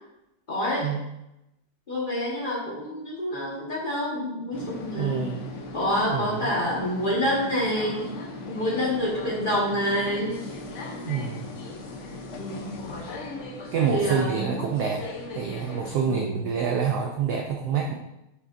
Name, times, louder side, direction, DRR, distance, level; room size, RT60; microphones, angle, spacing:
voice 1, 0.5-0.9 1.9-5.2 5.7-8.1 8.5-10.3 12.3-13.0 13.9-14.5 16.0-16.4, equal, 25° left, -5 dB, 1.5 m, -27 dB
sound 1, 4.5-16.0, left 2 dB, 60° left, 0.8 m, -38 dB
voice 2, 4.9-5.5 6.1-6.5 11.1-11.5 13.7-15.0 15.3-17.9, right 6 dB, 70° right, 2 dB, 1.0 m, -27 dB
7.9 x 6.0 x 2.6 m, 0.90 s
omnidirectional pair, 2.3 m